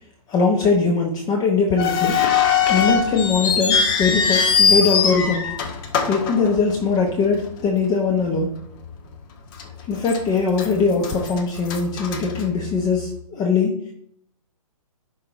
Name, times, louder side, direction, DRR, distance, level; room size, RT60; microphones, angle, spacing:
voice 1, 0.3-2.2 2.7-5.5 6.1-8.5 9.9-13.9, left 4 dB, 20° left, 1 dB, 1.0 m, -21 dB
sound 1, 1.8-7.1 7.4-7.5 8.2-8.4 8.9-9.0 9.6-10.2 10.5-13.0, left 6 dB, 35° left, 1.4 m, -21 dB
11.0 x 4.7 x 4.1 m, 0.67 s
hypercardioid pair, 135°, 19 cm